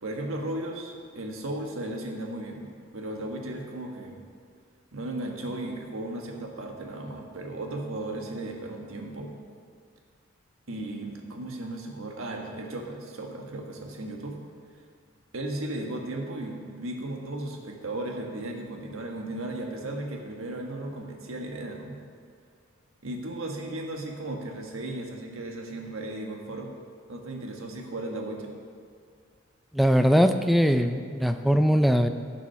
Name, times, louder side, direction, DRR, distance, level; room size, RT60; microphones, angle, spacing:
voice 1, 0.0-2.7 2.9-4.2 4.9-9.3 10.7-14.4 15.3-22.0 23.0-26.7 27.1-28.5, right 1 dB, 85° right, 1 dB, 1.4 m, -35 dB
voice 2, 29.7-32.1, equal, ahead, 8 dB, 0.4 m, -21 dB
11.5 x 6.3 x 5.7 m, 2.1 s
head